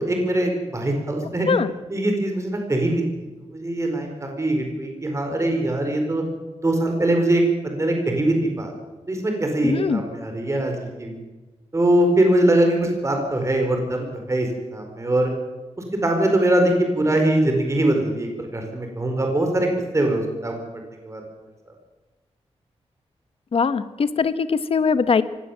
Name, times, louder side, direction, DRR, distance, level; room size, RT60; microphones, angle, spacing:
voice 1, 0.0-1.6 1.9-3.0 3.5-6.2 6.6-8.7 9.1-11.2 11.7-15.3 16.0-19.7 19.9-20.5 21.0-21.2, right 1 dB, 25° right, 3 dB, 4.7 m, -22 dB
voice 2, 9.6-10.0 23.5-25.2, left 5 dB, 60° left, 13 dB, 1.2 m, -21 dB
23.5 x 18.0 x 7.4 m, 1.2 s
wide cardioid pair, 120°, 11 cm